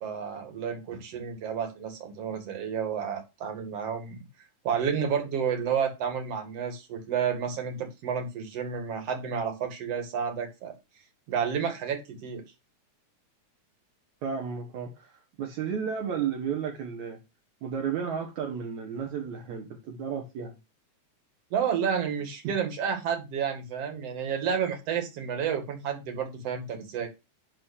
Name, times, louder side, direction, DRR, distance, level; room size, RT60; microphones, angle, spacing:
voice 1, 0.0-4.2 4.6-10.7 11.3-12.4 21.5-27.1, right 7 dB, 55° right, 3.0 m, -30 dB
voice 2, 14.2-17.2 17.6-20.6 22.4-22.5, right 7 dB, 70° right, 2.6 m, -33 dB
11.5 x 4.2 x 6.5 m
omnidirectional pair, 3.4 m